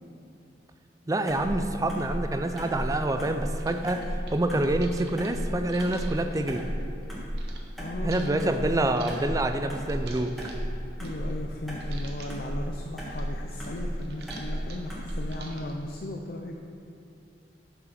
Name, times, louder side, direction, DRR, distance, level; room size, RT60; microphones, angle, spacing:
voice 1, 1.1-6.6 8.0-10.3, right 1 dB, 20° right, 7 dB, 0.4 m, -27 dB
sound 1, 1.3-15.4, equal, ahead, 1.4 m, -34 dB
sound 2, 2.0-2.1 2.4-7.6 8.1-11.5 11.8-12.5 12.8-15.8, right 4 dB, 60° right, 1.0 m, -48 dB
voice 2, 7.8-9.1 11.0-16.6, left 1 dB, 55° left, 2 dB, 0.5 m, -37 dB
6.9 x 6.3 x 5.8 m, 2.7 s
head